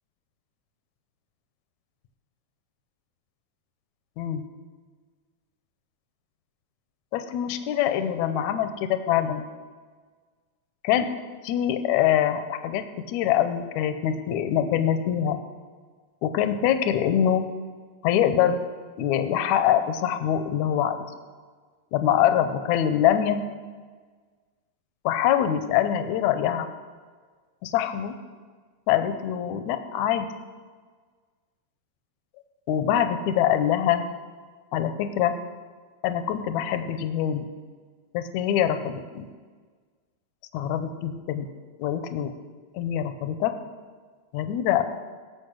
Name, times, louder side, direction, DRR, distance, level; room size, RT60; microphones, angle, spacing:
voice 1, 7.1-9.4 10.8-11.1 11.4-12.8 13.1-15.4 16.2-17.5 18.0-18.6 19.0-21.0 21.9-23.4 25.1-26.7 27.6-28.1 28.9-30.3 32.7-34.0 34.7-35.4 36.0-37.4 38.1-39.3 40.5-41.5 41.8-42.3 42.8-43.5 44.3-44.8, left 10 dB, 80° left, 9 dB, 2.0 m, -24 dB
17.5 x 7.1 x 6.4 m, 1.5 s
omnidirectional pair, 3.4 m